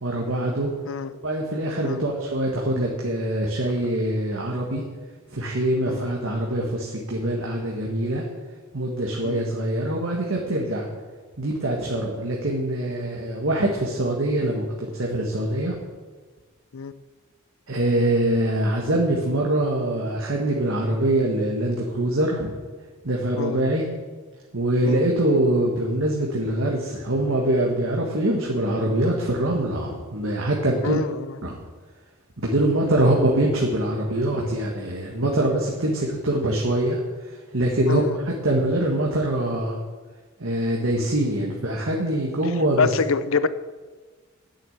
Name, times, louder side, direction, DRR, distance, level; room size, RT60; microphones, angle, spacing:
voice 1, 0.0-0.7 1.2-4.8 5.3-8.3 8.7-10.9 11.4-15.8 17.7-22.5 23.0-23.9 24.5-31.0 31.4-31.6 32.4-39.7 40.4-42.9, right 1 dB, 65° right, -2 dB, 1.6 m, -24 dB
voice 2, 30.8-31.4 37.9-38.2 42.8-43.5, left 5 dB, 70° left, 15 dB, 0.6 m, -25 dB
9.4 x 7.5 x 8.7 m, 1.4 s
head